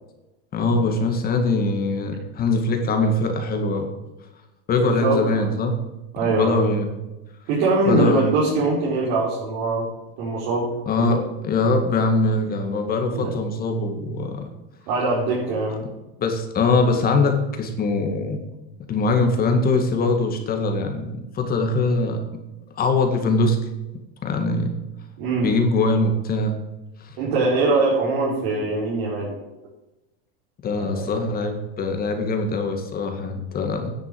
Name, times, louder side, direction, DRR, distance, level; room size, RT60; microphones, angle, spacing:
voice 1, 0.5-3.9 4.7-5.8 6.2-6.9 7.9-8.3 10.9-14.5 15.7-15.8 16.2-18.4 18.9-22.3 22.8-23.6 24.2-24.7 25.4-26.6 27.0-27.1 30.6-33.9, left 3 dB, 30° left, 5 dB, 2.0 m, -22 dB
voice 2, 4.7-5.5 6.1-6.7 7.5-9.9 10.2-10.7 11.0-11.2 13.1-13.3 14.9-15.9 25.2-25.5 27.2-29.4 30.8-31.2, right 3 dB, 65° right, -6 dB, 4.7 m, -22 dB
10.0 x 7.6 x 7.8 m, 1.0 s
supercardioid pair, 140°, 31 cm